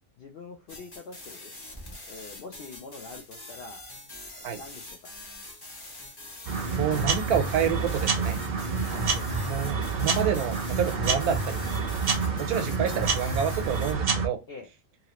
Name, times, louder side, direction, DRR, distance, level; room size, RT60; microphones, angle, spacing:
voice 1, 0.2-1.5 2.1-3.8 4.3-5.1 8.9-9.3 14.5-14.7, left 4 dB, 70° left, 0.5 m, -45 dB
sound 1, 0.7-13.9, left 2 dB, 20° left, 0.8 m, -44 dB
sound 2, 6.4-14.3, right 4 dB, 65° right, 0.4 m, -28 dB
voice 2, 6.8-8.4 9.5-11.6 12.3-14.4, right 8 dB, 85° right, 1.2 m, -28 dB
2.9 x 2.7 x 2.9 m
omnidirectional pair, 1.6 m